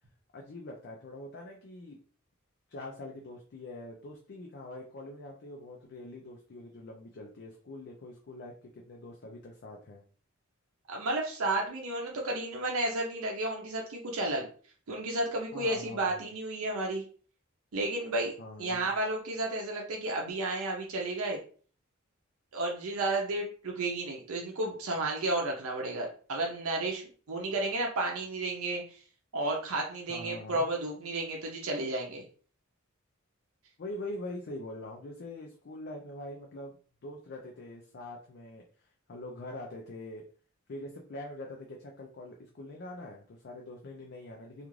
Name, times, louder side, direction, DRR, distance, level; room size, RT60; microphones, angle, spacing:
voice 1, 0.3-2.0 2.7-10.0 15.5-16.3 18.4-18.9 30.1-30.6 33.8-38.6 39.1-40.3 40.7-44.7, left 1 dB, 50° left, 0 dB, 0.4 m, -44 dB
voice 2, 10.9-14.5 14.9-17.0 17.7-18.3 18.6-21.4 22.5-29.0 29.3-32.3, right 2 dB, 80° right, 0 dB, 0.6 m, -32 dB
2.4 x 2.4 x 3.0 m, 0.42 s
head